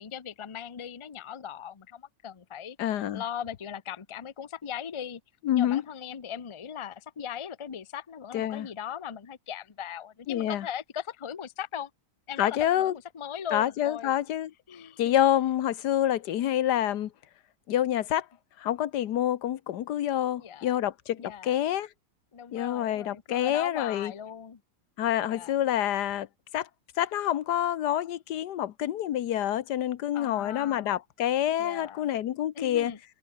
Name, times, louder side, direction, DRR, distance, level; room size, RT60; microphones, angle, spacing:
voice 1, 0.0-5.2 5.5-11.9 12.3-14.1 14.7-15.2 20.4-20.7 21.2-21.5 22.3-24.6 25.2-25.5 30.1-30.9 31.6-32.1 32.5-33.0, left 8 dB, 35° left, 0.5 m, -39 dB
voice 2, 2.8-3.2 5.4-5.8 8.3-8.7 10.3-10.6 12.4-12.9 13.5-14.5 15.0-17.1 17.7-18.3 18.6-21.9 22.5-24.1 25.0-26.3 26.5-26.7 27.0-32.9, left 11 dB, 90° left, 1.5 m, -27 dB
omnidirectional pair, 1.7 m